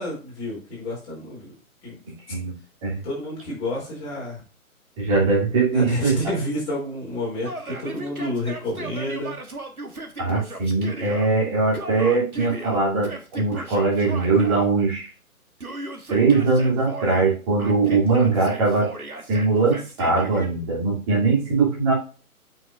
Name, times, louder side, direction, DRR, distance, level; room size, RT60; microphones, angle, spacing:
voice 1, 0.0-1.5 1.8-2.0 3.0-4.4 5.7-9.3, left 1 dB, 15° left, -5 dB, 3.0 m, -29 dB
voice 2, 5.0-6.4 10.2-15.1 16.1-18.9 19.3-21.9, right 4 dB, 25° right, -4 dB, 2.8 m, -21 dB
Yell, 7.4-11.3 11.7-14.7 15.6-17.3 17.6-20.5, right 2 dB, 80° right, 1.5 m, -36 dB
7.6 x 5.8 x 2.5 m, 0.35 s
figure-of-eight pair, 140°, 43 cm